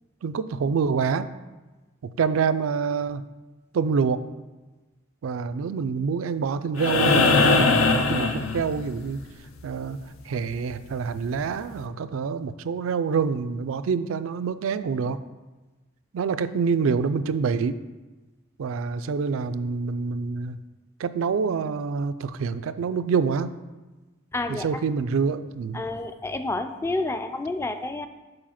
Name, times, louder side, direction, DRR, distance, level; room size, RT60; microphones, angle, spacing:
voice 1, 0.2-1.3 2.0-3.2 3.7-4.2 5.2-9.2 9.6-10.0 10.2-15.2 16.1-17.7 18.6-20.6 21.0-23.6 24.5-25.8, right 5 dB, 80° right, 12 dB, 0.4 m, -26 dB
sound 1, 6.8-9.1 10.9-11.0, left 3 dB, 90° left, 0.6 m, -20 dB
voice 2, 24.3-24.8 25.7-28.1, left 2 dB, 15° left, 9 dB, 0.3 m, -29 dB
4.8 x 4.8 x 5.7 m, 1.2 s
head